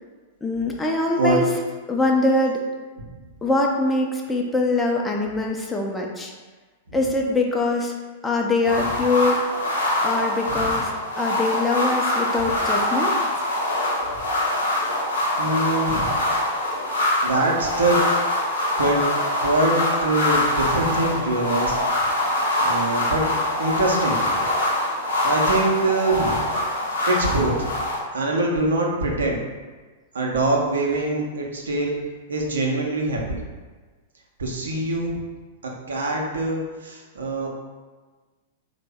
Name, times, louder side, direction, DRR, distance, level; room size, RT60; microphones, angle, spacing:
voice 1, 0.4-1.4 1.9-2.6 3.4-6.3 6.9-7.9 8.2-9.4 10.0-13.1, left 2 dB, 10° left, 0 dB, 0.4 m, -23 dB
sound 1, 8.6-28.0, left 1 dB, 80° left, 0.8 m, -24 dB
voice 2, 10.5-10.8 12.4-12.5 15.4-16.1 17.2-18.0 18.8-19.0 19.4-21.8 22.6-23.3 23.6-24.5 24.9-26.5 27.1-27.8 28.1-29.4 30.1-32.0 32.3-33.4 34.4-35.2 35.9-37.5, right 2 dB, 75° right, -1 dB, 0.6 m, -24 dB
3.2 x 2.1 x 3.4 m, 1.3 s
figure-of-eight pair, 100°, 0 cm